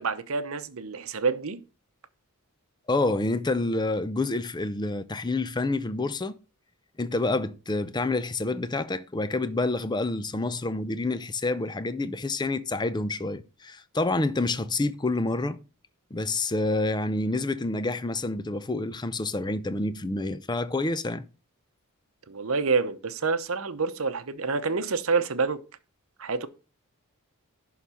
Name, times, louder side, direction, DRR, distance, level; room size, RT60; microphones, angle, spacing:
voice 1, 0.0-1.6 22.3-25.6 26.2-26.5, right 4 dB, 65° right, 0.9 m, -27 dB
voice 2, 2.9-6.4 7.0-15.6 16.1-21.2, left 2 dB, 20° left, 0.5 m, -28 dB
11.0 x 4.0 x 5.7 m
head